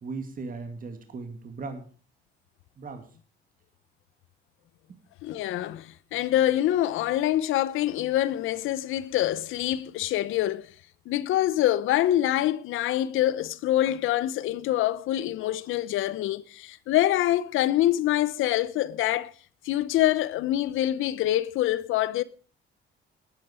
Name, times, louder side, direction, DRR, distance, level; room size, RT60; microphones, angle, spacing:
voice 1, 0.0-1.9 2.8-3.1, right 4 dB, 45° right, 2.1 m, -37 dB
voice 2, 5.2-10.7 11.1-19.3 19.6-22.2, left 13 dB, 85° left, 0.8 m, -25 dB
13.0 x 9.8 x 4.9 m
cardioid pair, 90°, 20 cm